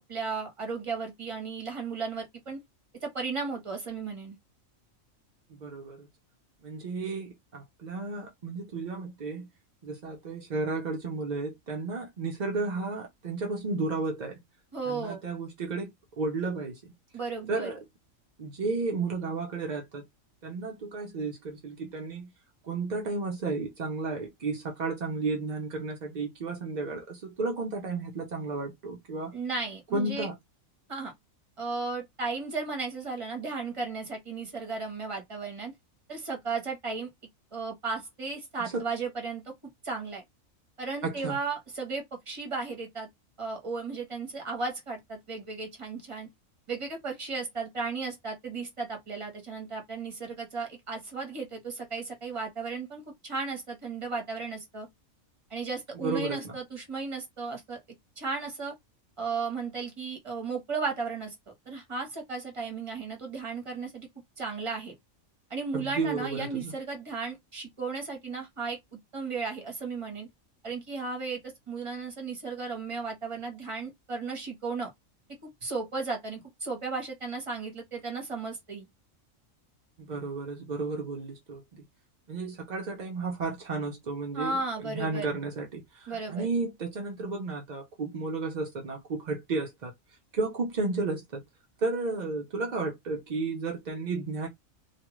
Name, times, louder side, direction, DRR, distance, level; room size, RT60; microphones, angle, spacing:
voice 1, 0.1-2.6 3.0-4.4 14.7-15.2 17.1-17.7 29.3-30.3 30.9-31.1 31.6-35.7 36.1-37.1 37.5-39.5 39.8-40.2 40.8-43.1 43.4-46.3 46.7-54.9 55.5-57.8 58.2-58.7 59.2-61.3 61.7-64.1 64.4-64.9 65.5-68.8 69.1-70.3 70.6-74.9 75.6-78.8 84.3-85.3 86.1-86.5, right 4 dB, 25° right, 0.9 m, -35 dB
voice 2, 5.5-6.1 6.6-9.5 9.8-14.4 14.9-16.9 17.5-17.8 18.4-20.0 20.4-22.3 22.6-29.4 29.9-30.4 38.6-38.8 41.0-41.4 56.0-56.6 65.7-66.7 80.0-81.8 82.3-89.9 90.3-91.4 91.8-94.5, right 3 dB, 60° right, 0.4 m, -33 dB
2.3 x 2.3 x 3.0 m
omnidirectional pair, 1.4 m